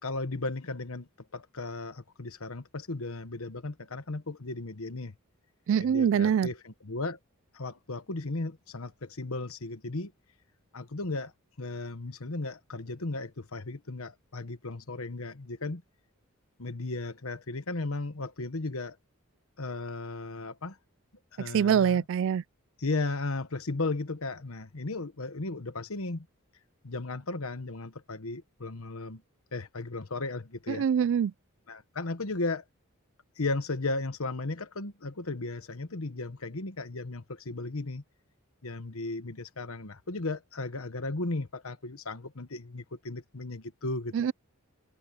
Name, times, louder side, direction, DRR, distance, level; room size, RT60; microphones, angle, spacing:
voice 1, 0.0-5.1 5.8-7.2 7.5-10.1 10.7-11.3 11.6-15.8 16.6-19.0 19.6-20.8 21.3-22.0 22.8-26.3 26.8-29.2 29.5-30.8 31.7-32.6 33.4-38.0 38.6-44.3, left 2 dB, 70° left, 1.3 m, -35 dB
voice 2, 5.7-6.5 21.5-22.4 30.7-31.3 44.1-44.3, right 7 dB, 60° right, 0.3 m, -24 dB
head